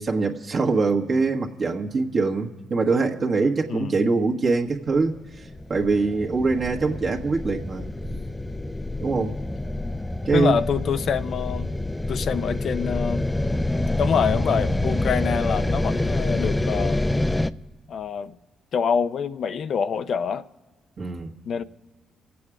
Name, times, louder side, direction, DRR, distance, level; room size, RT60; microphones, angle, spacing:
voice 1, 0.0-8.2 9.0-9.3 10.2-10.6 21.0-21.3, right 4 dB, 50° right, 1.4 m, -24 dB
voice 2, 3.7-4.1 10.3-11.7 12.1-13.3 14.0-17.1 17.9-18.4 18.7-20.5 21.5-21.6, left 7 dB, 65° left, 0.6 m, -26 dB
sound 1, 5.0-17.5, left 2 dB, 15° left, 0.5 m, -27 dB
25.5 x 8.5 x 4.9 m
cardioid pair, 70°, 0 cm